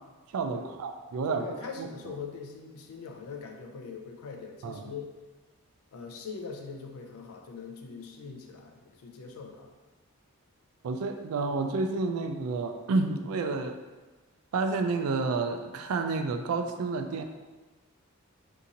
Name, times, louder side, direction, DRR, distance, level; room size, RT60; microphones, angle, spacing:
voice 1, 0.3-1.5 1.8-1.9 4.6-4.9 10.8-13.8 14.5-17.2, right 3 dB, 75° right, 7 dB, 0.3 m, -30 dB
voice 2, 1.3-5.1 5.9-9.7, left 5 dB, 75° left, 3 dB, 0.5 m, -42 dB
2.9 x 2.6 x 3.7 m, 1.3 s
head